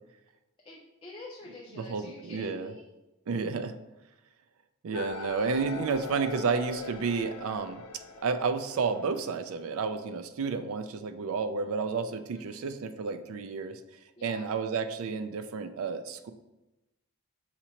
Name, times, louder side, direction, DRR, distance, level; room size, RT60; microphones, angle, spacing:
voice 1, 0.6-2.8 12.3-12.8 14.2-14.5, left 2 dB, 25° left, -2 dB, 0.4 m, -47 dB
voice 2, 1.7-2.7 3.3-3.7 4.8-7.8 8.2-13.8 14.2-16.3, right 5 dB, 70° right, 9 dB, 0.4 m, -31 dB
sound 1, 4.9-10.1, left 4 dB, 85° left, 0.5 m, -42 dB
6.0 x 2.9 x 2.8 m, 0.99 s
head